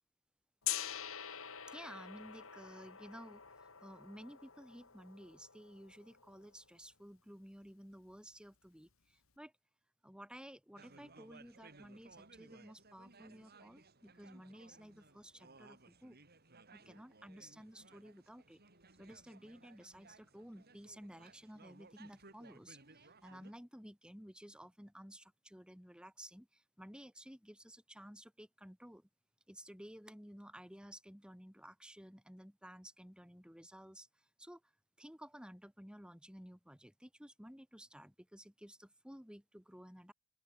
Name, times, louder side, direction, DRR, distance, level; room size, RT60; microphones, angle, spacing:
Gong, 0.6-6.6, left 11 dB, 75° left, 5.0 m, -45 dB
voice 1, 1.7-9.5 10.0-16.2 16.7-18.6 19.0-29.1 29.5-34.7 35.0-40.1, equal, 5° right, 4.1 m, -54 dB
sound 1, 10.8-23.5, right 3 dB, 50° right, 7.3 m, -61 dB
open air
head